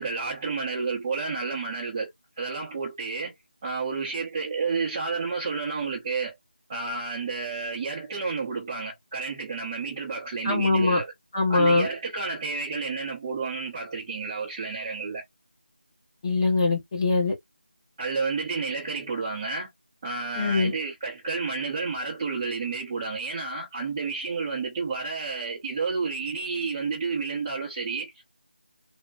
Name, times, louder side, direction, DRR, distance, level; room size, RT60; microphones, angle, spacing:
voice 1, 0.0-2.1 2.4-3.3 3.6-6.4 6.7-11.1 11.5-15.2 18.0-19.7 20.0-28.2, right 4 dB, 20° right, 0.7 m, -30 dB
voice 2, 10.4-11.0 11.3-11.9 16.2-17.3 20.4-20.7, left 3 dB, 25° left, 1.0 m, -22 dB
3.5 x 2.1 x 2.2 m
figure-of-eight pair, 170°, 6 cm